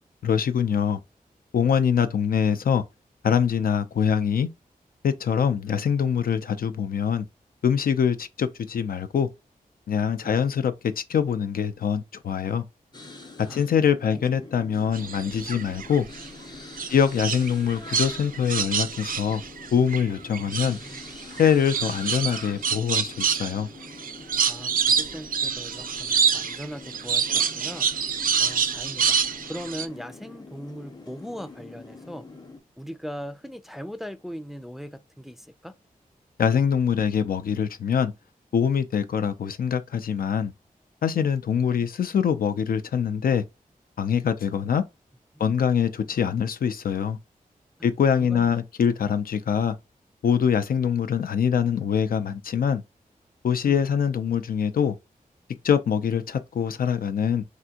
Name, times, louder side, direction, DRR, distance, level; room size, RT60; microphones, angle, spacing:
voice 1, 0.2-1.0 1.5-2.8 3.2-4.5 5.0-7.2 7.6-9.3 9.9-12.6 13.5-16.1 16.9-19.4 19.7-20.8 21.4-23.7 36.4-38.1 38.5-40.5 41.0-43.4 44.0-44.8 45.4-47.2 47.8-49.8 50.2-52.8 53.4-54.9 55.6-57.4, left 7 dB, 75° left, 0.4 m, -24 dB
sound 1, 12.9-32.6, left 2 dB, 25° left, 0.7 m, -45 dB
sound 2, 14.9-16.3 16.8-20.0 20.3-29.9, right 6 dB, 65° right, 0.4 m, -26 dB
voice 2, 20.4-21.0 24.5-27.9 28.4-29.2 29.4-32.3 32.8-35.8 41.2-41.3 41.7-41.9 47.8-48.5, equal, ahead, 0.4 m, -40 dB
3.4 x 2.5 x 2.8 m
cardioid pair, 60°, 15 cm